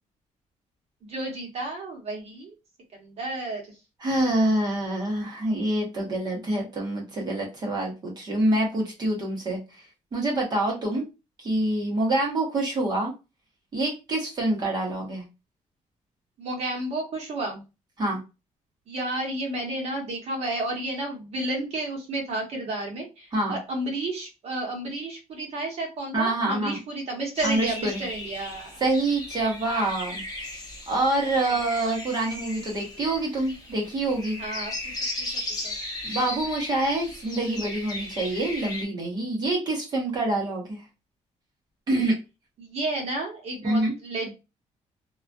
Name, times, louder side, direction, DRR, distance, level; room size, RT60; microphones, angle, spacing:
voice 1, 1.1-2.5 2.9-3.6 16.4-17.6 18.9-28.8 31.2-31.6 34.4-35.3 35.6-35.7 42.6-44.3, right 2 dB, 55° right, 0 dB, 1.0 m, -32 dB
voice 2, 4.0-9.6 10.1-11.1 11.4-13.1 13.7-15.2 18.0-18.2 23.3-23.6 26.1-26.8 27.4-28.0 28.8-30.2 30.9-34.4 36.0-40.8 41.9-42.2 43.6-43.9, right 2 dB, 30° right, -1 dB, 0.9 m, -26 dB
sound 1, 27.3-38.8, left 1 dB, 30° left, 0.7 m, -36 dB
2.3 x 2.2 x 2.5 m, 0.27 s
cardioid pair, 165°, 13 cm